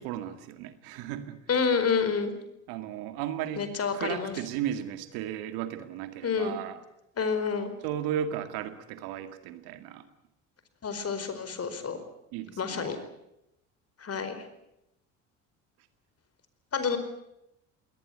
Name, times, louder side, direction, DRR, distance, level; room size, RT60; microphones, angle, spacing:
voice 1, 0.0-1.4 2.7-3.7 3.9-6.8 7.8-10.1 12.3-13.0, right 10 dB, 75° right, 10 dB, 2.2 m, -35 dB
voice 2, 1.5-2.3 3.6-4.3 6.2-6.6 7.2-7.7 10.8-12.0 12.6-13.0 14.0-14.4 16.7-17.0, left 5 dB, 40° left, 10 dB, 4.8 m, -28 dB
21.5 x 19.0 x 9.6 m, 0.83 s
supercardioid pair, 70°, 36 cm